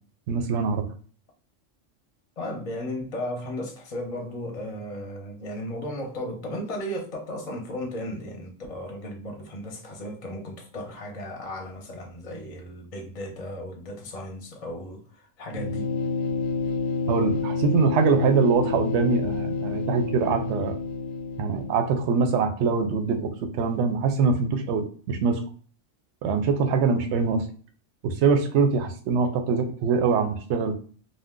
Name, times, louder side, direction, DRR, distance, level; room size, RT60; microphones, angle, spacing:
voice 1, 0.3-0.8 17.1-20.7 21.4-25.4 26.2-27.4 28.0-30.7, right 5 dB, 70° right, 0.8 m, -23 dB
voice 2, 2.4-15.9, left 1 dB, 35° left, 0.7 m, -35 dB
sound 1, 15.5-22.2, left 4 dB, 75° left, 0.9 m, -29 dB
2.5 x 2.2 x 3.6 m
omnidirectional pair, 1.3 m